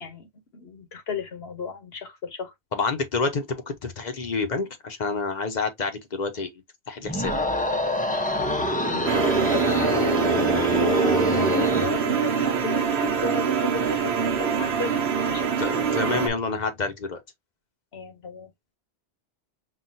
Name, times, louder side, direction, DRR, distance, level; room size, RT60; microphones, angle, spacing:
voice 1, 0.0-2.5 8.9-12.9 13.2-14.9 15.2-15.5 17.9-18.5, left 5 dB, 75° left, 1.3 m, -34 dB
voice 2, 2.7-6.5 6.9-7.3 15.6-17.2, left 4 dB, 50° left, 0.8 m, -28 dB
sound 1, 7.0-11.9, left 1 dB, 10° left, 0.5 m, -25 dB
sound 2, 9.1-16.3, right 7 dB, 85° right, 1.1 m, -24 dB
5.7 x 2.3 x 2.5 m
omnidirectional pair, 1.1 m